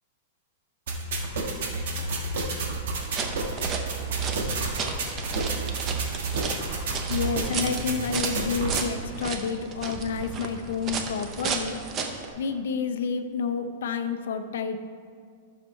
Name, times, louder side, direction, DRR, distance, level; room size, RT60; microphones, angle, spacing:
sound 1, 0.9-8.8, right 3 dB, 70° right, 1.6 m, -30 dB
sound 2, 3.0-12.3, right 5 dB, 25° right, 0.7 m, -34 dB
voice 1, 7.1-11.8 12.4-14.8, left 5 dB, 80° left, 8 dB, 0.7 m, -29 dB
13.0 x 6.7 x 3.2 m, 2.1 s
supercardioid pair, 160°, 0 cm